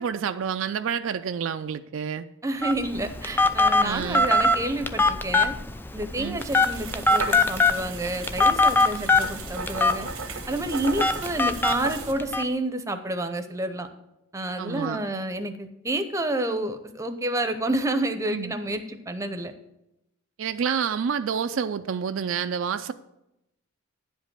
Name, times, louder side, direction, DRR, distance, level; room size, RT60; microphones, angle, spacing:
voice 1, 0.0-2.3 3.8-4.3 6.2-6.4 8.9-9.1 14.6-15.0 18.3-18.6 20.4-22.9, right 7 dB, 60° right, 10 dB, 0.4 m, -29 dB
voice 2, 2.4-5.5 5.9-10.1 10.5-13.9 14.3-19.5, right 1 dB, 15° right, 8 dB, 0.7 m, -29 dB
Telephone, 2.6-12.4, left 2 dB, 10° left, 0.3 m, -23 dB
sound 1, 6.4-12.1, right 4 dB, 85° right, 1.0 m, -36 dB
10.5 x 5.2 x 7.3 m, 0.88 s
head